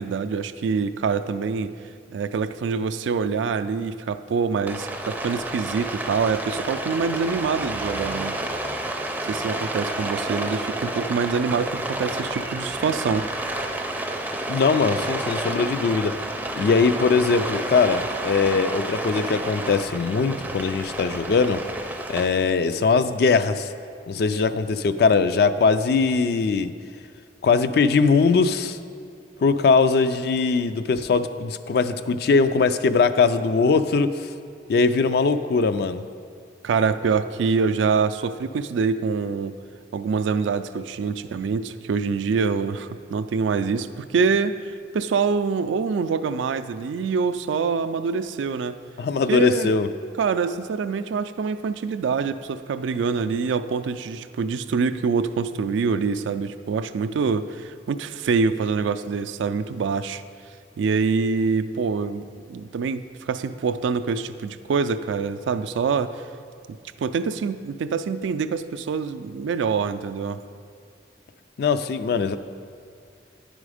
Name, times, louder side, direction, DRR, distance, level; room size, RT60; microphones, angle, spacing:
voice 1, 0.0-1.7 2.1-8.4 9.2-13.3 36.6-39.6 39.9-48.8 49.3-49.7 50.2-60.2 60.8-66.1 66.7-70.4, right 5 dB, 85° right, 11 dB, 0.3 m, -25 dB
Rain, 4.7-22.2, right 1 dB, 10° right, 0.4 m, -30 dB
voice 2, 14.5-16.1 16.6-21.6 22.1-23.7 24.1-26.7 27.4-28.8 29.4-34.3 34.7-36.0 49.0-49.9 71.6-72.4, left 4 dB, 55° left, 11 dB, 0.3 m, -21 dB
9.9 x 5.0 x 4.9 m, 2.3 s
head